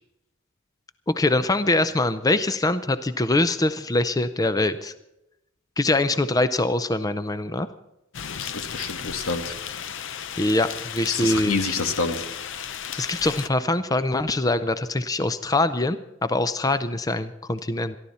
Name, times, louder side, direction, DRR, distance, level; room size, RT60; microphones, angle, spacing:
voice 1, 1.1-4.9 5.8-7.7 10.4-11.6 13.0-18.0, left 2 dB, 15° left, 12 dB, 0.5 m, -23 dB
sound 1, 8.1-13.5, left 8 dB, 60° left, 0.7 m, -35 dB
voice 2, 8.4-9.5 11.1-12.2, left 4 dB, 90° left, 7 dB, 1.6 m, -27 dB
27.0 x 11.5 x 4.2 m, 0.90 s
head